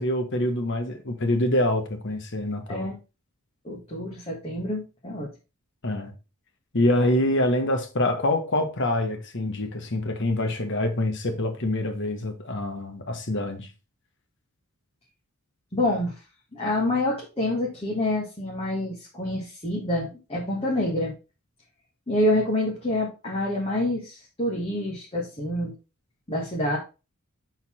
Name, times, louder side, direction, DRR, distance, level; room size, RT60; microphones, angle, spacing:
voice 1, 0.0-2.9 5.8-6.1 6.7-13.7, left 1 dB, 55° left, 1.3 m, -25 dB
voice 2, 3.6-5.3 15.7-16.1 16.5-21.1 22.1-25.7 26.3-26.8, left 1 dB, 25° left, 1.4 m, -27 dB
6.7 x 4.0 x 4.3 m
head